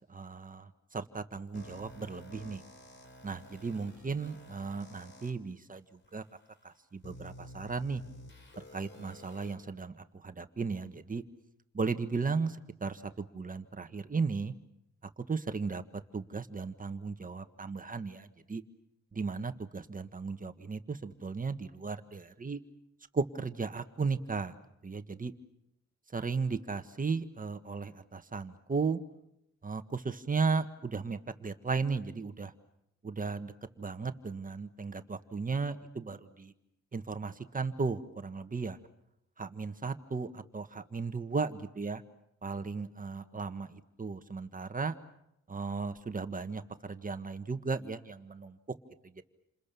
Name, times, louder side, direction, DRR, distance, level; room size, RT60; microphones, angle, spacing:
voice 1, 0.1-2.6 3.2-6.2 6.6-8.0 8.6-11.2 11.7-14.5 15.2-18.6 19.1-22.6 23.1-24.5 24.8-25.3 26.1-29.0 29.6-32.5 33.0-36.5 36.9-38.8 39.4-42.0 42.4-43.7 44.0-45.0 45.5-48.6 49.0-49.2, right 4 dB, 30° right, 9 dB, 1.6 m, -35 dB
sound 1, 1.5-5.3 6.0-6.1 7.0-9.5, left 1 dB, 40° left, 4.8 m, -51 dB
29.0 x 27.5 x 7.0 m, 0.81 s
cardioid pair, 120°, 29 cm